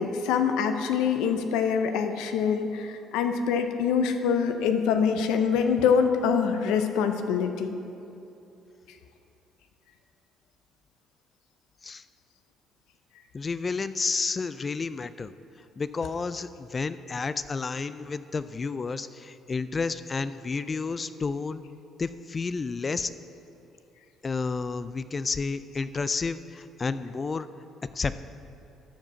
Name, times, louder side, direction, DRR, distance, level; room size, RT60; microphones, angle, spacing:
voice 1, 0.0-7.8, left 6 dB, 80° left, 7 dB, 0.6 m, -25 dB
voice 2, 13.3-15.3 15.8-21.6 22.0-23.1 24.2-27.5 28.0-28.2, left 4 dB, 35° left, 14 dB, 0.4 m, -31 dB
13.0 x 4.9 x 5.9 m, 2.8 s
supercardioid pair, 65°, 0 cm